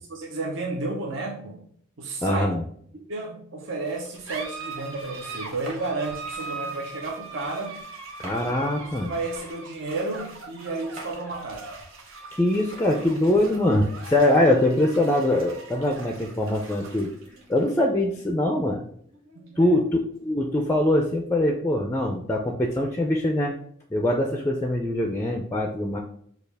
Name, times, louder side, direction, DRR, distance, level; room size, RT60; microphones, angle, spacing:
voice 1, 0.1-1.6 2.0-2.5 2.9-7.8 8.8-11.7 19.3-19.8, right 3 dB, 65° right, 0 dB, 0.7 m, -32 dB
voice 2, 2.2-2.6 8.2-9.1 12.3-17.1 17.5-18.8 19.6-23.5 23.9-26.0, left 1 dB, 15° left, 3 dB, 0.3 m, -23 dB
sound 1, 3.8-20.8, right 3 dB, 90° right, 1.1 m, -41 dB
sound 2, 5.7-6.8 8.2-9.4 11.0-12.0, right 2 dB, 35° right, 1.2 m, -45 dB
6.5 x 2.3 x 3.4 m, 0.63 s
head